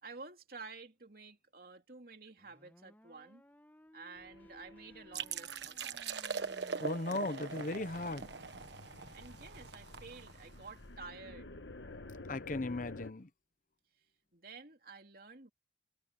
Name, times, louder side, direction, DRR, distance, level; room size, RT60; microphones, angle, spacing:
voice 1, 0.0-3.4 3.9-6.0 9.1-11.5 14.3-15.5, right 4 dB, 55° right, 2.9 m, -51 dB
sound 1, 2.4-8.3, equal, 10° left, 1.8 m, -59 dB
sound 2, 4.2-13.1, left 2 dB, 80° left, 1.5 m, -52 dB
sound 3, 5.1-10.7, right 5 dB, 75° right, 1.3 m, -42 dB
voice 2, 6.8-8.3 12.3-13.3, left 2 dB, 45° left, 0.8 m, -37 dB
head